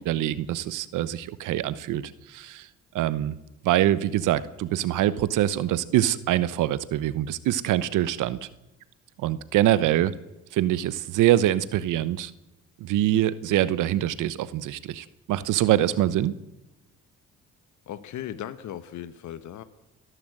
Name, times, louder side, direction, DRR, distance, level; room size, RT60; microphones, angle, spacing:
voice 1, 0.0-2.0 2.3-2.7 2.9-3.4 3.6-8.4 9.2-10.1 10.5-12.3 12.8-16.3, right 13 dB, 90° right, 16 dB, 1.1 m, -24 dB
voice 2, 17.9-19.6, left 11 dB, 75° left, 12 dB, 1.2 m, -37 dB
29.0 x 11.5 x 7.9 m, 1.0 s
cardioid pair, 90°, 30 cm